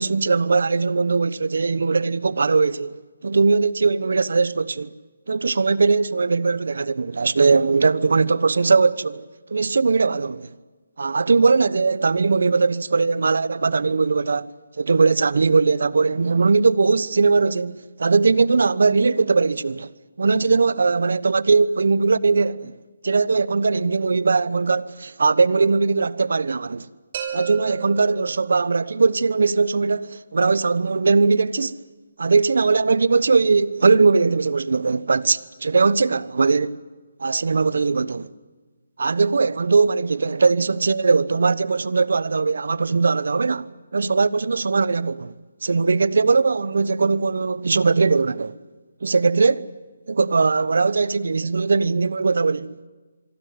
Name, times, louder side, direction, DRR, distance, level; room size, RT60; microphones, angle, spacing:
voice 1, 0.0-2.9 3.2-4.9 5.3-9.2 9.5-10.5 11.0-14.5 14.8-19.9 20.2-22.7 23.0-26.9 27.3-31.8 32.2-36.8 37.2-38.3 39.0-45.3 45.6-48.5 49.0-49.7 50.1-52.9, right 4 dB, 75° right, 1.1 m, -20 dB
sound 1, 27.1-29.0, right 8 dB, 40° right, 5.3 m, -34 dB
26.0 x 22.5 x 9.5 m
hypercardioid pair, 160°, 0 cm